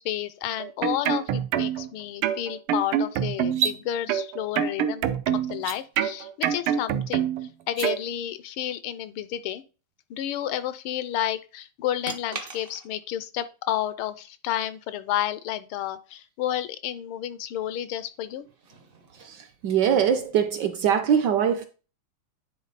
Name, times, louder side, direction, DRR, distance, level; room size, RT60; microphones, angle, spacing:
voice 1, 0.0-5.1 5.5-7.3 7.7-9.6 10.1-18.5, left 11 dB, 80° left, 1.5 m, -31 dB
sound 1, 0.6-1.9 2.2-3.7 4.1-5.6 6.0-7.5 7.8-8.0, right 9 dB, 85° right, 1.6 m, -26 dB
sound 2, 3.4-3.8 5.5-5.8 7.6-7.9 12.0-13.1 16.2-16.3 18.3-20.5, right 6 dB, 55° right, 0.6 m, -34 dB
voice 2, 19.1-21.6, right 8 dB, 70° right, 1.1 m, -23 dB
9.6 x 3.9 x 4.0 m
omnidirectional pair, 2.4 m